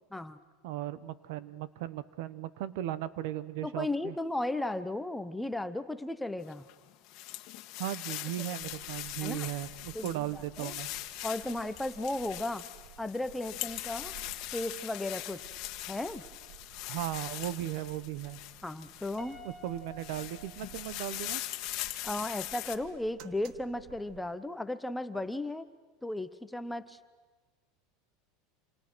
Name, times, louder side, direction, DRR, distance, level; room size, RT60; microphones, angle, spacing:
voice 1, 0.6-4.2 7.8-10.9 16.9-18.4 19.4-21.4, right 13 dB, 70° right, 16 dB, 1.1 m, -37 dB
voice 2, 3.6-6.7 9.2-9.5 9.9-10.8 11.2-12.6 13.0-14.1 14.5-15.5 15.9-16.2 18.6-19.4 22.0-25.7 26.0-27.0, left 2 dB, 5° left, 11 dB, 0.9 m, -35 dB
sound 1, 6.5-19.3 19.8-22.8, left 16 dB, 50° left, 1.7 m, -41 dB
sound 2, 8.6-24.4, right 10 dB, 50° right, 1.4 m, -55 dB
Piano, 19.2-21.4, left 1 dB, 15° right, 4.2 m, -51 dB
27.5 x 27.0 x 6.3 m, 1.3 s
supercardioid pair, 145°, 0 cm